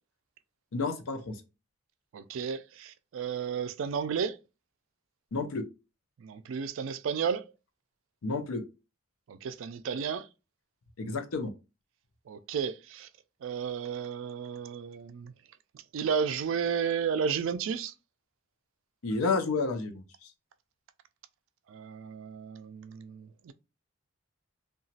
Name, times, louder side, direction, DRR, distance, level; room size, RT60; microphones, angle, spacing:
voice 1, 0.7-1.3 5.3-5.6 8.2-8.6 11.0-11.5 19.0-20.0, left 3 dB, 90° left, 0.6 m, -30 dB
voice 2, 2.1-4.3 6.2-7.4 9.3-10.2 12.3-13.1 13.4-15.3 15.9-17.9 21.7-23.5, right 6 dB, 70° right, 0.3 m, -33 dB
2.9 x 2.3 x 2.7 m
head